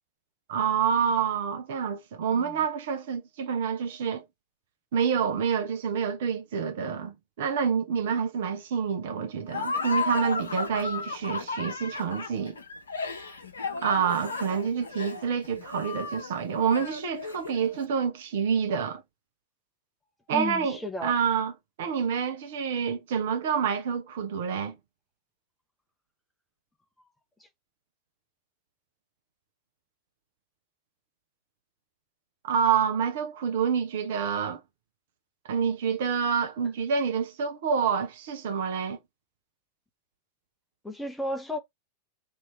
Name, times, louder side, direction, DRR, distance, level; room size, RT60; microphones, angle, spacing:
voice 1, 0.5-4.2 4.9-12.6 13.8-19.0 20.3-21.5 21.8-24.8 32.4-34.6 35.5-39.0, right 7 dB, 55° right, 0.9 m, -28 dB
Laughter, 9.5-17.8, left 3 dB, 75° left, 0.8 m, -34 dB
voice 2, 20.3-21.2 27.4-27.5 40.8-41.6, left 1 dB, 5° left, 0.7 m, -33 dB
3.1 x 2.8 x 4.4 m
figure-of-eight pair, 90°, 0 cm